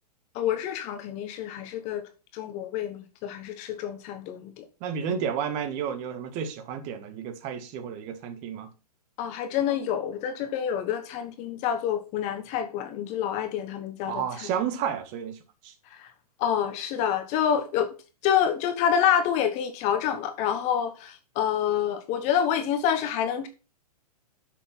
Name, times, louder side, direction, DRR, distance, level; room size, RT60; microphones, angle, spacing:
voice 1, 0.3-2.0 2.3-4.6 9.2-14.5 15.9-16.1 16.4-17.9 18.2-23.5, left 9 dB, 35° left, 1.1 m, -27 dB
voice 2, 4.8-8.7 14.1-15.7, right 8 dB, 40° right, 1.8 m, -31 dB
8.0 x 6.5 x 5.8 m
hypercardioid pair, 115°, 20 cm